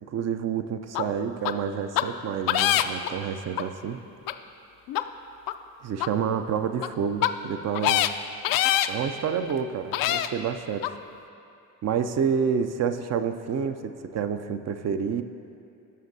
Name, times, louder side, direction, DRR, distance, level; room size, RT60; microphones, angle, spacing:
voice 1, 0.0-4.0 5.8-8.1 8.9-10.9 11.8-15.2, right 7 dB, 35° right, 9 dB, 0.5 m, -29 dB
sound 1, 0.9-1.0 1.4-1.5 1.9-2.0 2.5-3.1 3.6-3.7 4.3-4.4 4.9-5.0 5.5-5.6 6.0-6.1 6.7-6.9 7.2-7.3 7.7-8.1 8.4-8.9 9.5-9.6 9.9-10.3 10.8-10.9, left 13 dB, 50° left, 0.5 m, -23 dB
16.0 x 6.4 x 2.7 m, 2.6 s
hypercardioid pair, 55°, 45 cm